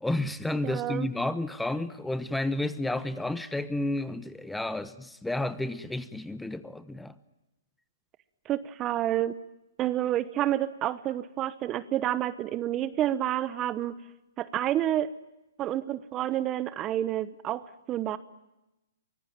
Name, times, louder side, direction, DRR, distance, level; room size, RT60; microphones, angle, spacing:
voice 1, 0.0-7.1, left 2 dB, 5° left, 1.1 m, -31 dB
voice 2, 0.6-1.1 8.5-9.3 9.8-13.9 14.4-15.1 15.6-18.2, right 12 dB, 25° right, 1.0 m, -29 dB
24.0 x 21.0 x 9.0 m
hypercardioid pair, 140°, 0 cm